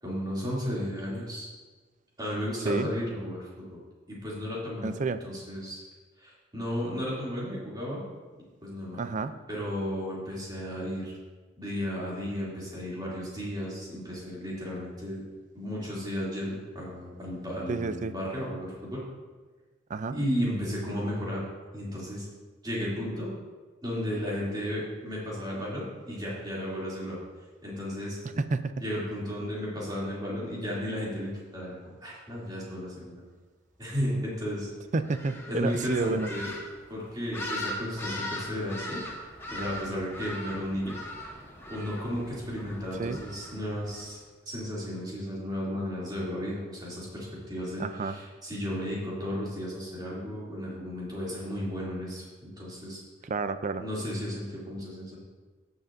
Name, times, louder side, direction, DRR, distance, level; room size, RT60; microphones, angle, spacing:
voice 1, 0.0-1.5 2.2-3.8 4.1-5.8 6.2-8.0 8.6-9.0 9.5-11.2 11.6-15.2 15.5-19.0 20.1-21.5 21.7-22.3 22.6-23.3 23.8-27.2 27.6-28.2 28.8-33.2 33.8-34.7 35.5-36.5 36.9-39.0 39.5-40.9 41.7-44.2 44.5-53.0 53.8-55.2, equal, 20° right, -6 dB, 2.7 m, -34 dB
voice 2, 4.8-5.2 9.0-9.3 17.7-18.1 19.9-20.2 28.5-28.6 34.9-36.3 43.0-43.2 47.8-48.1 53.2-53.8, right 4 dB, 40° right, 12 dB, 0.4 m, -30 dB
sound 1, 35.0-44.1, left 1 dB, 15° left, 1.3 m, -40 dB
15.0 x 6.7 x 2.6 m, 1.3 s
head